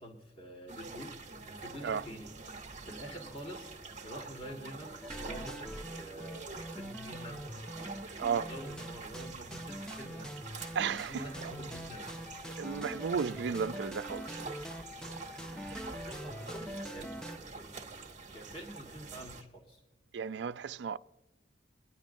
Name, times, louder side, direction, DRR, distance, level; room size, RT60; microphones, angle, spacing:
voice 1, 0.0-3.7 4.0-7.6 8.4-12.1 15.6-19.8, equal, 30° left, 1.6 m, -48 dB
sound 1, 0.7-19.4, right 3 dB, 45° right, 1.1 m, -46 dB
sound 2, 5.0-17.4, equal, 5° left, 0.4 m, -44 dB
voice 2, 8.2-8.5 10.7-11.5 12.5-14.5 15.5-16.0 20.1-21.0, right 6 dB, 75° right, 0.3 m, -35 dB
23.0 x 10.5 x 2.6 m
head